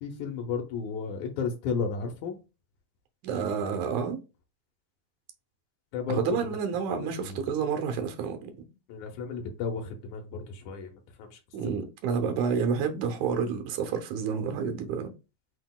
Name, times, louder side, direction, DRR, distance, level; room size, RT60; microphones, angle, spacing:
voice 1, 0.0-2.4 5.9-6.5 6.9-7.5 8.9-11.3, left 5 dB, 85° left, 2.3 m, -33 dB
voice 2, 3.2-4.2 6.1-8.5 11.5-15.1, right 6 dB, 85° right, 2.3 m, -29 dB
7.7 x 2.9 x 2.3 m
omnidirectional pair, 3.3 m